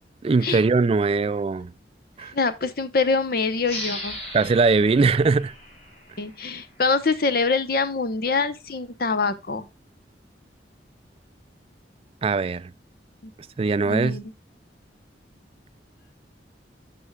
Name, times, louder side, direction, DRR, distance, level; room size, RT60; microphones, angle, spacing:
voice 1, 0.2-1.7 2.2-2.3 4.3-5.5 12.2-12.7 13.6-14.2, right 4 dB, 30° right, 0.3 m, -21 dB
voice 2, 2.2-4.2 6.2-9.7 13.2-13.3 13.8-14.3, left 4 dB, 55° left, 0.8 m, -25 dB
sound 1, 3.6-6.9, left 1 dB, 35° left, 3.5 m, -37 dB
9.6 x 6.2 x 2.3 m
head